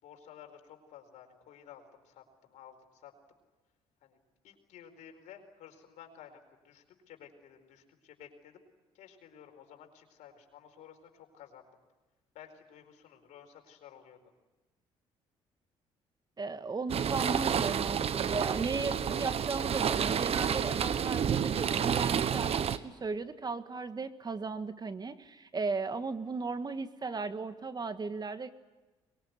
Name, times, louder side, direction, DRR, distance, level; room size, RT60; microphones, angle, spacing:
voice 1, 0.0-2.2 2.5-3.1 4.0-4.2 4.4-6.4 6.6-8.6 8.9-11.6 12.3-14.2, left 9 dB, 70° left, 5 dB, 4.6 m, -53 dB
voice 2, 16.4-28.5, right 4 dB, 35° right, 10 dB, 1.7 m, -36 dB
sound 1, 16.9-22.8, right 8 dB, 50° right, 1.3 m, -30 dB
23.5 x 22.0 x 9.6 m, 1.2 s
hypercardioid pair, 60°, 13 cm